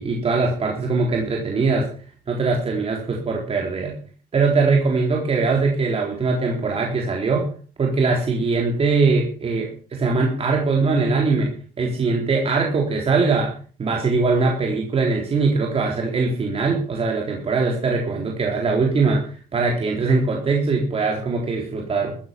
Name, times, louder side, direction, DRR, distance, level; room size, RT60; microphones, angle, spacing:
voice 1, 0.0-1.9 2.3-3.9 4.3-7.5 7.8-11.5 11.8-13.5 13.8-19.2 19.5-22.1, right 4 dB, 35° right, 0 dB, 3.9 m, -21 dB
14.5 x 9.8 x 7.2 m, 0.42 s
cardioid pair, 110°, 17 cm